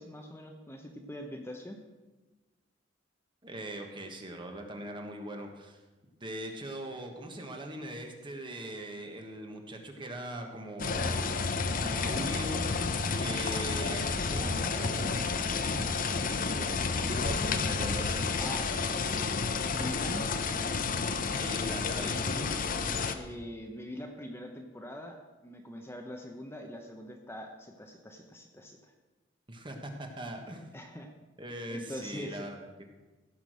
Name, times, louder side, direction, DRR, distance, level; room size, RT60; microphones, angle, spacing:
voice 1, 0.0-1.8 18.4-19.0 19.7-20.3 23.1-28.9 30.7-31.1 31.7-32.5, equal, 15° left, 3 dB, 0.9 m, -43 dB
voice 2, 3.4-5.8 6.2-11.1 11.8-12.7 13.2-15.3 16.2-18.3 21.2-22.5 29.5-30.7 31.4-32.8, right 1 dB, 25° right, 3 dB, 1.4 m, -41 dB
sound 1, 10.8-23.1, left 4 dB, 45° left, 0.7 m, -30 dB
16.0 x 6.1 x 6.2 m, 1.2 s
head